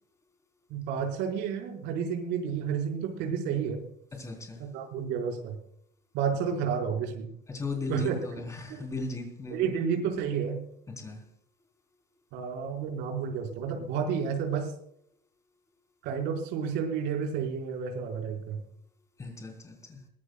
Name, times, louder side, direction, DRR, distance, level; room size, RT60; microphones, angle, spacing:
voice 1, 0.7-3.8 4.7-5.6 6.1-7.3 7.9-8.2 9.5-10.6 12.3-14.7 16.0-18.6, right 7 dB, 60° right, 2 dB, 5.0 m, -31 dB
voice 2, 4.1-4.7 7.5-9.7 11.0-11.2 19.2-20.0, left 3 dB, 15° left, 4 dB, 3.8 m, -37 dB
22.5 x 17.0 x 2.3 m, 0.67 s
cardioid pair, 170°, 20 cm